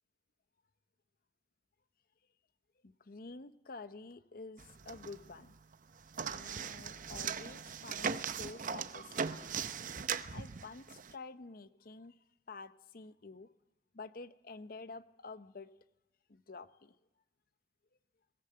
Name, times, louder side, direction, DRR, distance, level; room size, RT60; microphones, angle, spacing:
voice 1, 2.8-5.6 6.3-9.7 10.3-13.5 13.9-15.7 16.3-17.0, left 3 dB, 55° left, 13 dB, 0.8 m, -49 dB
sound 1, 4.6-5.5 5.7-11.1, right 6 dB, 50° right, 0.7 m, -39 dB
22.0 x 17.0 x 7.7 m, 1.0 s
head